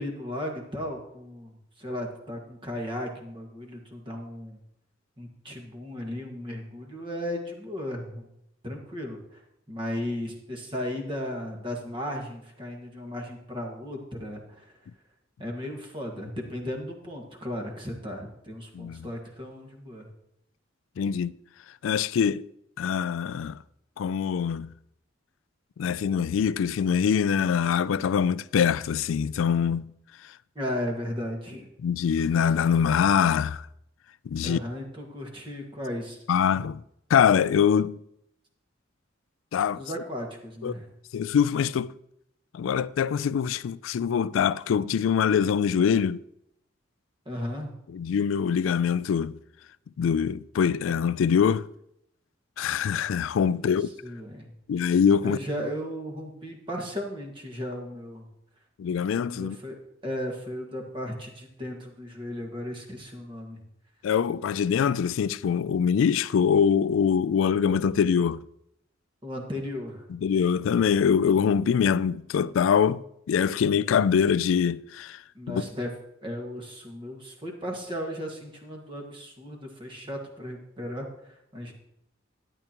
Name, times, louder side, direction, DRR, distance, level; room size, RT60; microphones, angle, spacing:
voice 1, 0.0-4.6 5.2-8.3 8.6-9.4 9.7-14.7 15.4-20.1 30.5-31.7 34.4-36.2 39.7-40.9 47.2-47.7 53.5-53.7 54.0-54.5 55.2-58.3 59.3-63.6 69.2-70.0 75.3-75.9 76.2-81.7, left 1 dB, 25° right, 1.7 m, -35 dB
voice 2, 18.7-19.1 21.0-21.3 21.8-22.5 22.8-23.6 24.0-24.7 25.8-29.9 31.8-33.7 34.3-34.6 36.3-36.8 37.1-38.0 39.5-39.8 40.6-40.7 41.1-41.9 42.5-46.2 47.9-49.4 50.0-51.7 52.6-53.9 54.7-55.4 58.8-59.6 64.0-68.4 70.1-75.2 75.5-75.6, left 7 dB, 90° left, 0.3 m, -24 dB
12.5 x 10.0 x 2.9 m
head